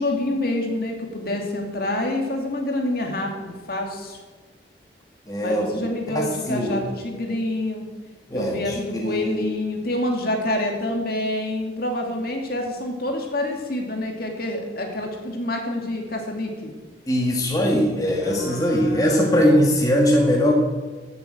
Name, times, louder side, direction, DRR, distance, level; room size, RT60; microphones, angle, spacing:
voice 1, 0.0-4.2 5.4-7.8 8.3-16.7 18.2-19.6, left 1 dB, 50° left, 2 dB, 2.4 m, -27 dB
voice 2, 5.3-6.8 8.3-9.5 17.1-20.5, equal, 20° left, -1 dB, 1.9 m, -21 dB
15.5 x 8.1 x 7.8 m, 1.3 s
head